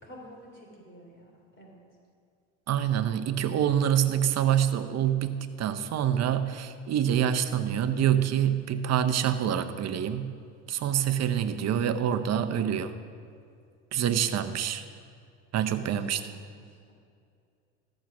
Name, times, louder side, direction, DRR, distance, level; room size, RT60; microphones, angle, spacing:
voice 1, 0.0-1.8 15.9-16.4 16.7-16.9, equal, 30° left, 0 dB, 3.4 m, -50 dB
voice 2, 2.7-10.3 10.7-12.9 13.9-14.8 15.5-16.2, right 9 dB, 45° right, 10 dB, 0.8 m, -26 dB
14.0 x 6.5 x 6.0 m, 2.3 s
hypercardioid pair, 75°, 37 cm